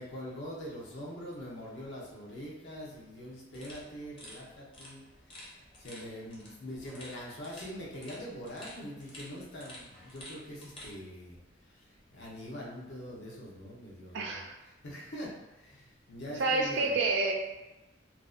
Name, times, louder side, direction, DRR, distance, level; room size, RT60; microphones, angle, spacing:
voice 1, 0.0-17.0, equal, 65° left, -4 dB, 0.7 m, -44 dB
sound 1, 3.5-10.9, left 1 dB, 25° left, 0.6 m, -51 dB
voice 2, 14.1-14.5 16.4-17.3, right 3 dB, 60° right, 1 dB, 0.4 m, -28 dB
2.5 x 2.1 x 2.4 m, 1.0 s
head